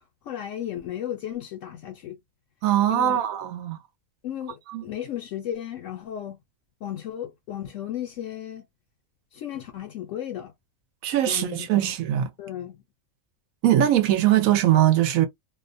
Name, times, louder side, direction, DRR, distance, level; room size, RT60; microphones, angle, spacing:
voice 1, 0.2-2.2 2.9-3.2 4.2-6.4 6.8-8.7 9.3-10.5 11.3-12.0 12.4-12.8, left 11 dB, 70° left, 0.9 m, -34 dB
voice 2, 2.6-3.8 4.7-4.8 11.0-12.3 13.6-15.3, right 12 dB, 80° right, 1.0 m, -21 dB
2.6 x 2.1 x 2.5 m
omnidirectional pair, 1.4 m